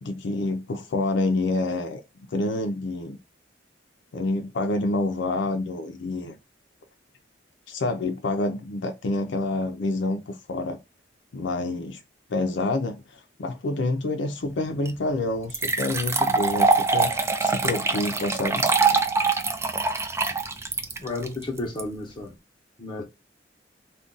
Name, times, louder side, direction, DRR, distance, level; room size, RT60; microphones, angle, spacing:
voice 1, 0.0-2.0 2.3-3.2 4.1-6.4 7.7-10.8 11.3-12.0 12.3-17.1 17.4-18.7, left 2 dB, 75° left, 0.5 m, -27 dB
sound 1, 14.9-15.0 15.5-21.8, right 4 dB, 15° right, 0.3 m, -23 dB
voice 2, 21.0-22.3 22.8-23.0, left 2 dB, 25° left, 0.8 m, -32 dB
2.4 x 2.2 x 3.8 m
head